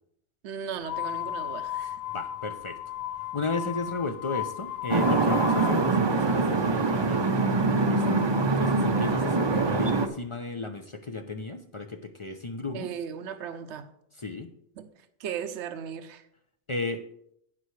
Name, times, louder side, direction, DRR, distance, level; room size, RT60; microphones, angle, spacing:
voice 1, 0.4-2.0 12.7-13.9 14.8-14.9 15.2-16.2, right 8 dB, 85° right, 1.0 m, -36 dB
sound 1, 0.8-5.8, left 12 dB, 65° left, 0.8 m, -34 dB
voice 2, 2.1-2.8 3.3-7.3 7.8-8.2 8.6-12.9 14.2-14.5 16.7-17.0, left 3 dB, 40° left, 0.4 m, -34 dB
sound 2, 4.9-10.1, right 3 dB, 35° right, 0.5 m, -24 dB
16.0 x 5.6 x 3.2 m
omnidirectional pair, 1.2 m